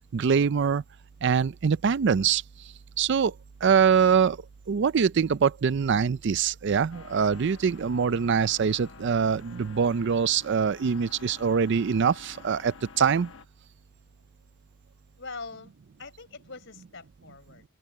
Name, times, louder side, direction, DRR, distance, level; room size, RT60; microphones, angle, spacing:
voice 1, 0.1-0.8 1.2-2.4 3.0-3.3 3.6-4.4 4.7-13.3, right 6 dB, 65° right, 0.4 m, -23 dB
sound 1, 6.9-13.4, left 4 dB, 90° left, 1.0 m, -49 dB
voice 2, 15.2-15.7 16.0-17.6, left 4 dB, 70° left, 4.6 m, -42 dB
head